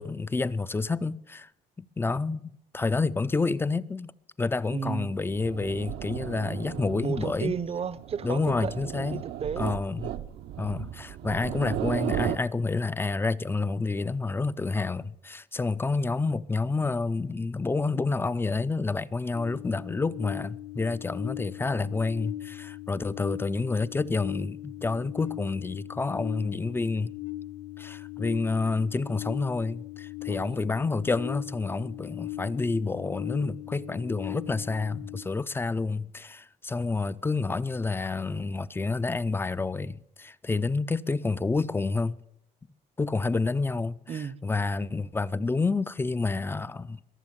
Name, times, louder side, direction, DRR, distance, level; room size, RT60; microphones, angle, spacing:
voice 1, 0.0-1.5 1.8-4.1 4.4-7.5 8.2-9.2 9.6-10.1 10.6-27.1 27.8-42.2 43.0-47.0, left 3 dB, 15° left, 0.4 m, -29 dB
voice 2, 4.7-5.1 7.0-9.7 30.3-30.6 44.1-44.4, right 7 dB, 35° right, 0.6 m, -33 dB
sound 1, 5.1-12.4, right 11 dB, 75° right, 0.8 m, -35 dB
sound 2, 19.3-35.2, left 16 dB, 80° left, 1.4 m, -39 dB
21.5 x 7.2 x 7.3 m
cardioid pair, 110°, 17 cm